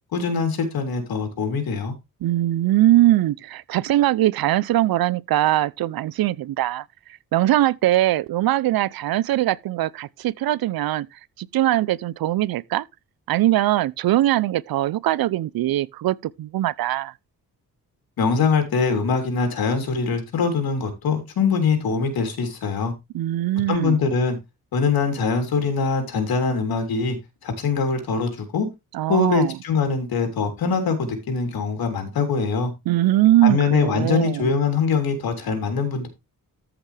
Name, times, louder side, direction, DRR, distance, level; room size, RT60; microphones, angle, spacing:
voice 1, 0.1-1.9 18.2-22.9 23.7-24.4 24.7-27.2 27.4-28.7 29.1-32.7 33.4-36.1, left 5 dB, 90° left, 3.3 m, -23 dB
voice 2, 2.2-6.8 7.3-11.1 11.4-12.9 13.3-17.1 23.1-24.0 28.9-29.6 32.9-34.5, right 14 dB, 80° right, 0.6 m, -21 dB
14.0 x 5.9 x 3.3 m
wide cardioid pair, 150°, 35 cm